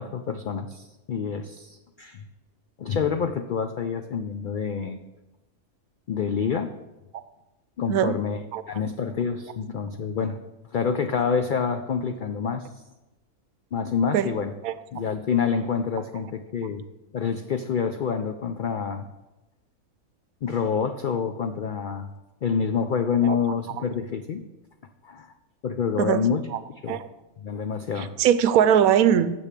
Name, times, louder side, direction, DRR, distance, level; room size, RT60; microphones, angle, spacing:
voice 1, 0.0-2.2 2.8-5.0 6.1-6.7 7.8-8.4 8.7-10.4 10.7-12.8 13.7-14.5 14.9-16.8 17.1-19.1 20.4-22.1 22.4-24.4 25.0-25.3 25.6-26.5 26.8-27.0 27.4-28.1, left 6 dB, 85° left, 8 dB, 0.4 m, -27 dB
voice 2, 28.0-29.3, right 9 dB, 85° right, 13 dB, 1.1 m, -20 dB
7.0 x 6.8 x 7.4 m, 1.0 s
omnidirectional pair, 1.5 m